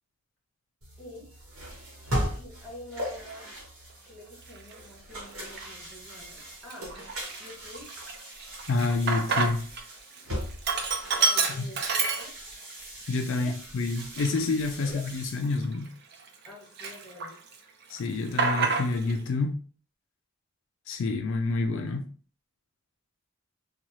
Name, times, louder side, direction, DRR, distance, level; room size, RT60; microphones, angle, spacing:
sound 1, 0.8-15.5, equal, 75° right, 1.2 m, -39 dB
voice 1, 2.2-3.5 4.0-6.9 7.4-7.9 11.2-12.4 13.3-13.6 14.8-15.0 16.4-17.4, left 1 dB, 5° left, 1.0 m, -46 dB
Sink (filling or washing), 4.6-4.7 5.4-5.9 6.3-6.4 6.7-9.8 10.1-12.7 13.1-13.2 13.9-16.5 16.8-17.6 17.8-19.2, right 4 dB, 50° right, 0.4 m, -29 dB
voice 2, 8.7-9.7 13.1-15.9 17.9-19.6 20.9-22.1, left 3 dB, 65° left, 0.3 m, -28 dB
3.0 x 2.3 x 2.7 m
head